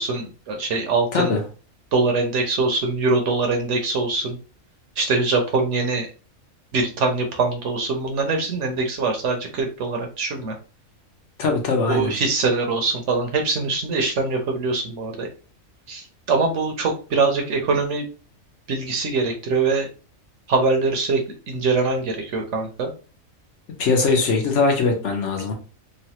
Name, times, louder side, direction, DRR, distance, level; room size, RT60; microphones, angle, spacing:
voice 1, 0.0-1.3 1.9-4.4 5.0-6.1 6.7-10.5 11.9-15.3 15.9-18.1 18.7-19.9 20.5-22.9, right 3 dB, 65° right, 3 dB, 0.9 m, -23 dB
voice 2, 11.4-12.1 23.8-25.5, left 4 dB, 65° left, 3 dB, 1.0 m, -21 dB
3.1 x 2.2 x 2.8 m, 0.35 s
omnidirectional pair, 1.4 m